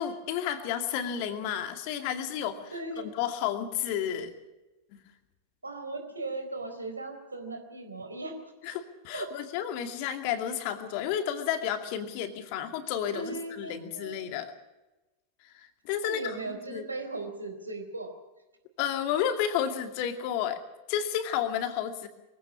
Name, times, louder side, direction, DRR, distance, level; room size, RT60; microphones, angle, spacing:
voice 1, 0.0-4.3 4.9-5.0 8.6-14.5 15.5-16.8 18.8-20.6 20.9-22.1, left 9 dB, 45° left, 7 dB, 2.4 m, -32 dB
voice 2, 2.7-3.1 5.6-8.3 9.1-9.3 13.1-14.2 16.0-18.1, right 2 dB, 80° right, 6 dB, 4.1 m, -37 dB
23.0 x 16.0 x 7.4 m, 1.1 s
figure-of-eight pair, 90°, 0 cm